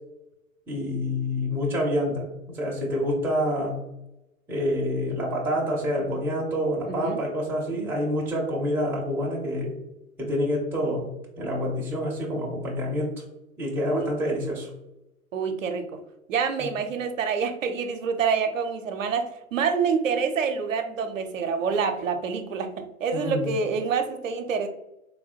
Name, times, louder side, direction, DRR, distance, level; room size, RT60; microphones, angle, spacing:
voice 1, 0.7-3.8 4.5-9.7 10.2-11.1 11.4-13.2 13.6-14.7 16.6-16.7 23.1-23.5, equal, 5° right, -3 dB, 0.5 m, -27 dB
voice 2, 6.9-7.2 13.9-14.1 15.3-15.8 16.3-24.7, right 6 dB, 65° right, 6 dB, 0.6 m, -27 dB
3.4 x 2.2 x 4.2 m, 0.92 s
figure-of-eight pair, 100°, 42 cm